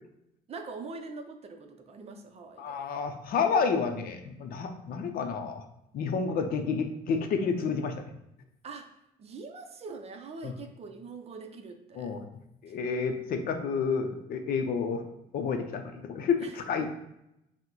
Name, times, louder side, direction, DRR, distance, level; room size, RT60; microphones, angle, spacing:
voice 1, 0.5-2.8 8.6-8.9 9.2-12.1 16.4-16.5, right 4 dB, 40° right, 5 dB, 0.5 m, -43 dB
voice 2, 2.6-5.6 5.9-8.0 10.4-10.5 11.9-12.2 12.6-15.0 15.3-16.9, left 5 dB, 60° left, 6 dB, 0.6 m, -30 dB
5.6 x 2.1 x 3.0 m, 0.82 s
cardioid pair, 110°, 17 cm